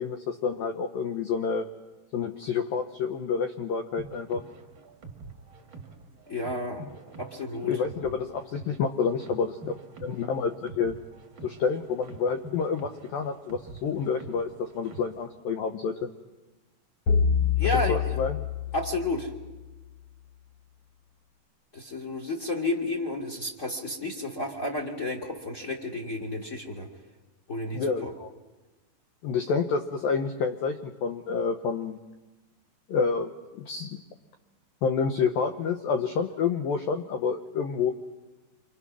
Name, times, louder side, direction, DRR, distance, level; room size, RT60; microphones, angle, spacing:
voice 1, 0.0-1.7 2.1-4.4 7.7-11.0 11.4-15.9 17.6-18.4 27.7-28.3 29.2-32.0 32.9-34.0 34.8-37.9, left 5 dB, 80° left, 6 dB, 2.0 m, -29 dB
sound 1, 4.0-15.2, right 3 dB, 50° right, 1.4 m, -46 dB
voice 2, 6.3-6.8 7.2-7.7 17.6-18.2 18.7-19.3 21.7-26.9 27.5-28.1, left 2 dB, 25° left, 4 dB, 1.9 m, -31 dB
sound 2, 17.1-19.5, left 7 dB, 45° left, 2.3 m, -26 dB
27.5 x 27.0 x 6.2 m, 1.2 s
omnidirectional pair, 5.6 m